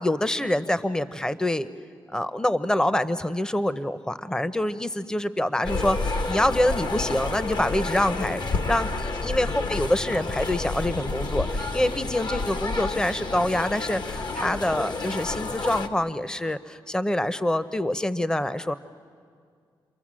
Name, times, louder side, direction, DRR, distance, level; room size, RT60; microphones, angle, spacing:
voice 1, 0.0-1.7 2.1-18.7, left 1 dB, 10° left, 13 dB, 0.7 m, -26 dB
sound 1, 5.6-15.9, left 3 dB, 55° left, 1.3 m, -30 dB
29.5 x 23.0 x 7.5 m, 2.2 s
cardioid pair, 85°, 9 cm